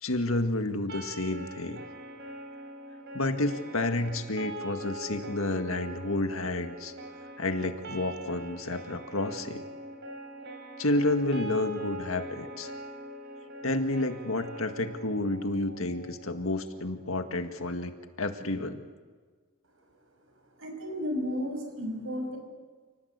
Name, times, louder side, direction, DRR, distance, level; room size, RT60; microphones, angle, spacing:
voice 1, 0.0-1.8 3.1-6.9 7.4-9.6 10.8-12.7 13.6-18.8, left 2 dB, 85° left, 7 dB, 1.9 m, -30 dB
sound 1, 0.9-16.9, right 1 dB, 55° right, 3.7 m, -42 dB
voice 2, 20.6-22.4, left 1 dB, 75° right, 4 dB, 6.3 m, -33 dB
29.0 x 19.0 x 8.2 m, 1.5 s
head